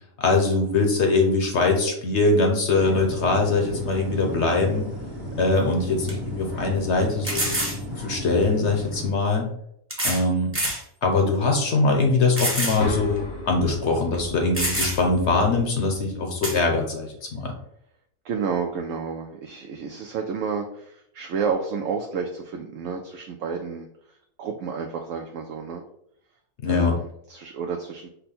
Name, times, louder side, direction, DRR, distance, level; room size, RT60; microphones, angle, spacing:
voice 1, 0.2-4.9 5.4-7.5 8.0-9.5 10.0-10.5 11.0-17.5 26.6-26.9, left 3 dB, 55° left, 2 dB, 0.9 m, -22 dB
sound 1, 2.8-9.1, equal, 45° right, 1.6 m, -34 dB
sound 2, 5.5-5.6 6.1-6.2 7.2-7.8 8.9-9.0 9.9-10.3 10.5-10.8 11.3-11.4 12.4-12.8 13.2-13.3 14.1-14.2 14.5-15.2 16.4-16.6, right 1 dB, 10° right, 0.8 m, -26 dB
sound 3, 12.8-16.8, left 3 dB, 90° left, 1.5 m, -35 dB
voice 2, 18.2-25.8 26.7-28.1, right 6 dB, 70° right, 3 dB, 0.8 m, -31 dB
5.4 x 2.2 x 4.2 m, 0.73 s
omnidirectional pair, 1.6 m